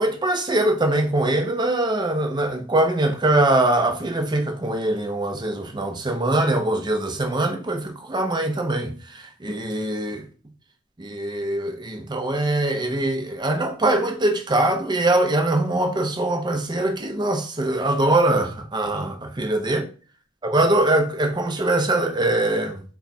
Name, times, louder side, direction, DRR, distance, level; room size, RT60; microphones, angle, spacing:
voice 1, 0.0-10.3 11.0-19.9 20.4-22.8, right 2 dB, 25° right, 0.6 m, -22 dB
3.7 x 2.3 x 4.0 m
head